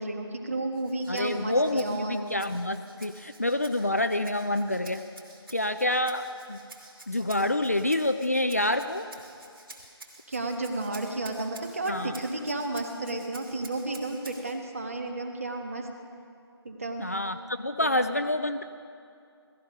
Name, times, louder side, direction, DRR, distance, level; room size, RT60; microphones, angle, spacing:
voice 1, 0.0-2.3 10.3-15.9 16.6-17.1 17.8-17.9, right 2 dB, 30° right, 4 dB, 1.3 m, -32 dB
Rattle (instrument), 0.7-14.6, right 2 dB, 55° right, 2.6 m, -50 dB
voice 2, 1.1-5.0 5.5-6.6 7.1-9.1 11.9-12.2 17.0-18.6, left 1 dB, 35° left, 8 dB, 0.4 m, -27 dB
17.5 x 15.0 x 5.3 m, 2.4 s
figure-of-eight pair, 175°, 14 cm